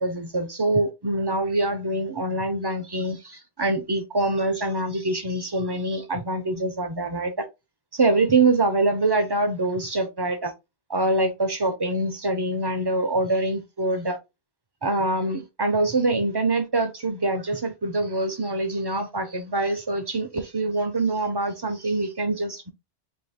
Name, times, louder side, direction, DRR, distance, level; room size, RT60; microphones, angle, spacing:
voice 1, 0.0-7.5 7.9-10.5 10.9-14.2 14.8-22.7, right 2 dB, 40° right, 0.4 m, -25 dB
3.4 x 2.3 x 3.4 m
omnidirectional pair, 1.1 m